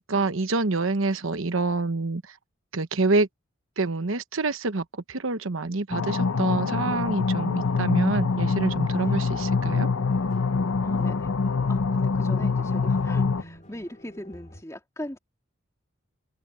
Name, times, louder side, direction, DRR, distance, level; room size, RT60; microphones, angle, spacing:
voice 1, 0.0-2.2 2.7-3.3 3.8-9.9, right 3 dB, 80° right, 1.0 m, -27 dB
sound 1, 5.9-13.4, left 4 dB, 85° left, 0.7 m, -25 dB
sound 2, 7.3-14.6, left 1 dB, 35° left, 2.7 m, -48 dB
voice 2, 10.8-11.3 11.7-15.2, left 1 dB, 15° left, 2.7 m, -40 dB
head